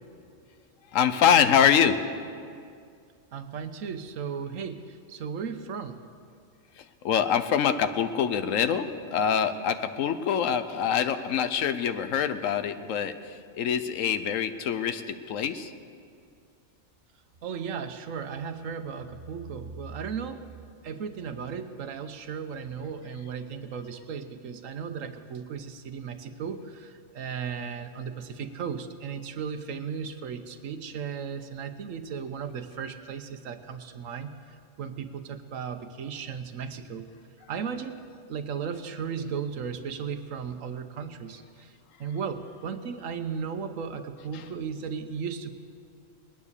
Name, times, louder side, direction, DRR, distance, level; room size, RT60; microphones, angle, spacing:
voice 1, 0.9-2.0 7.0-15.7, left 8 dB, 90° left, 10 dB, 1.1 m, -25 dB
voice 2, 3.3-6.0 17.4-20.5 20.8-37.1 37.5-38.0 38.3-41.7 42.0-45.5, right 6 dB, 85° right, 9 dB, 1.2 m, -36 dB
20.0 x 9.7 x 6.7 m, 2.3 s
omnidirectional pair, 1.3 m